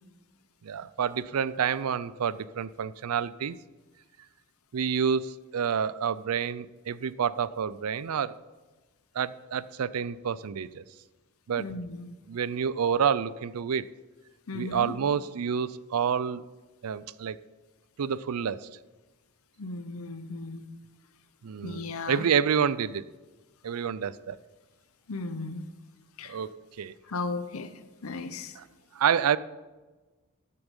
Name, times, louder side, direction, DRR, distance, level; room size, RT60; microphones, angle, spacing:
voice 1, 0.6-3.6 4.7-8.4 9.1-10.8 11.5-11.7 12.3-13.9 14.5-16.4 16.8-17.4 18.0-18.7 21.4-23.0 23.6-24.4 26.3-26.9 28.6-28.7 28.9-29.4, right 7 dB, 85° right, 18 dB, 0.4 m, -28 dB
voice 2, 11.6-12.1 14.5-14.9 19.6-20.7 21.6-22.3 25.1-25.7 26.2-26.4 27.1-27.7 28.0-28.6, left 3 dB, 75° left, 11 dB, 0.8 m, -35 dB
13.5 x 6.9 x 5.3 m, 1.2 s
head